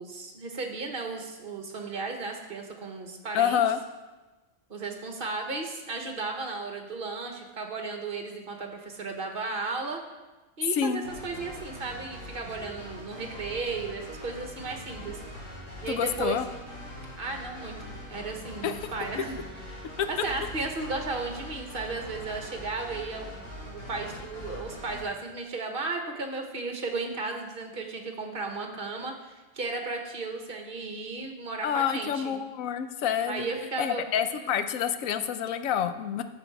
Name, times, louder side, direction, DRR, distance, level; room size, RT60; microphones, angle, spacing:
voice 1, 0.0-3.6 4.7-10.0 10.6-15.2 15.8-16.4 17.2-19.4 19.7-32.4 33.3-34.0, right 3 dB, 45° right, 3 dB, 1.4 m, -35 dB
voice 2, 3.3-3.8 10.7-11.0 15.9-16.5 18.6-18.8 20.0-20.1 31.6-33.5 33.8-36.2, left 9 dB, 90° left, 10 dB, 1.1 m, -27 dB
sound 1, 11.0-25.0, left 1 dB, 65° left, 4.0 m, -42 dB
11.5 x 7.1 x 4.6 m, 1.2 s
omnidirectional pair, 1.4 m